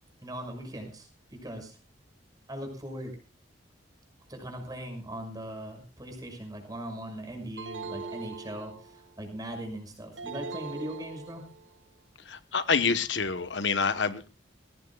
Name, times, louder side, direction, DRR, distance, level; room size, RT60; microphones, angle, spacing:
voice 1, 0.2-1.8 2.5-3.1 4.3-11.5, right 1 dB, 20° right, 4 dB, 6.2 m, -40 dB
sound 1, 7.6-9.1 10.2-11.8, right 4 dB, 80° right, 1.0 m, -41 dB
voice 2, 12.3-14.3, left 5 dB, 80° left, 11 dB, 1.2 m, -27 dB
21.5 x 17.5 x 2.4 m, 0.31 s
head